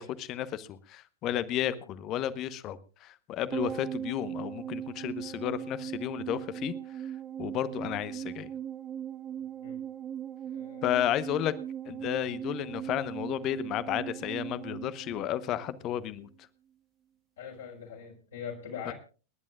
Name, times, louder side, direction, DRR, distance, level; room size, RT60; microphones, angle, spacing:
voice 1, 0.0-6.7 7.4-8.5 10.8-11.5 11.9-16.3 18.9-19.0, left 11 dB, 35° left, 15 dB, 1.0 m, -32 dB
sound 1, 3.5-16.0 16.3-16.4, right 9 dB, 25° right, 0.5 m, -39 dB
voice 2, 10.5-10.9 15.4-15.5 17.4-18.9, left 7 dB, 65° left, -3 dB, 4.3 m, -42 dB
30.0 x 11.0 x 2.4 m, 0.36 s
figure-of-eight pair, 90°, 0 cm